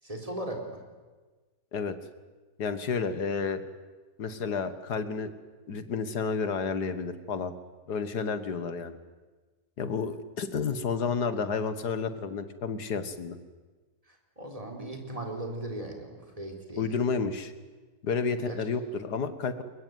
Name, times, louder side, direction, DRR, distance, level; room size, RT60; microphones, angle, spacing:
voice 1, 0.0-0.8 14.4-16.9 18.4-18.6, right 1 dB, 20° right, 2 dB, 4.0 m, -37 dB
voice 2, 2.6-3.6 4.2-5.3 5.7-7.5 7.9-9.0 9.8-13.4 16.8-17.5 18.0-19.6, left 5 dB, 75° left, 11 dB, 2.1 m, -31 dB
22.5 x 21.5 x 9.4 m, 1.3 s
omnidirectional pair, 1.8 m